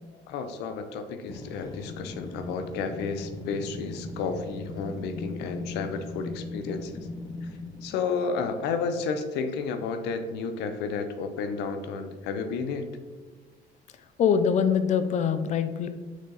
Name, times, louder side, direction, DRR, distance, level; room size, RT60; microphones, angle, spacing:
voice 1, 0.3-7.1 7.4-7.5 7.8-12.9, left 5 dB, 90° left, 8 dB, 0.6 m, -32 dB
sound 1, 1.3-8.0, left 2 dB, 25° left, 0.9 m, -39 dB
voice 2, 14.2-15.9, left 7 dB, 45° left, 10 dB, 0.4 m, -23 dB
6.1 x 4.0 x 4.0 m, 1.4 s
cardioid pair, 110°, 17 cm